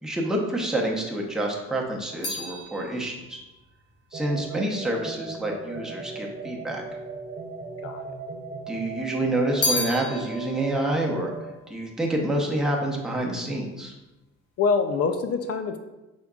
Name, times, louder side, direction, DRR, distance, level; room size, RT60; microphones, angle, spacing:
voice 1, 0.0-3.4 4.1-6.8 8.7-11.3 11.7-13.9, right 1 dB, ahead, -2 dB, 0.8 m, -28 dB
sound 1, 1.3-5.7 6.5-7.3 7.6-8.7 9.0-12.6 12.8-13.4, left 2 dB, 85° left, 1.4 m, -34 dB
sound 2, 4.1-11.5, right 3 dB, 30° right, 0.5 m, -37 dB
voice 2, 7.8-8.2 14.6-15.8, left 5 dB, 55° left, 7 dB, 0.5 m, -25 dB
5.2 x 3.7 x 2.3 m, 1.1 s
cardioid pair, 90°, 30 cm